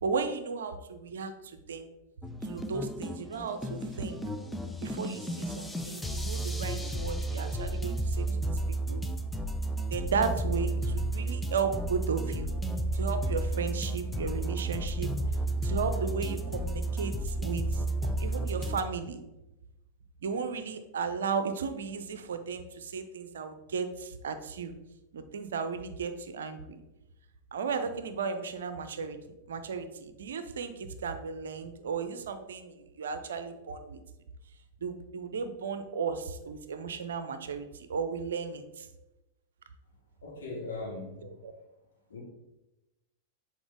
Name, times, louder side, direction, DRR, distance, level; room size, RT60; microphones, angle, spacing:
voice 1, 0.0-1.9 2.4-4.2 4.8-9.0 9.9-12.5 12.9-15.1 15.6-17.8 18.2-19.2 20.2-24.7 25.1-26.8 27.5-29.2 29.5-34.0 34.8-38.9 41.2-41.5, right 5 dB, 65° right, 9 dB, 0.6 m, -35 dB
sound 1, 2.2-18.8, right 1 dB, 5° left, 0.5 m, -32 dB
voice 2, 40.2-41.2 42.1-42.2, left 2 dB, 65° left, -3 dB, 2.0 m, -38 dB
7.0 x 4.4 x 3.4 m, 0.96 s
figure-of-eight pair, 90°, 0 cm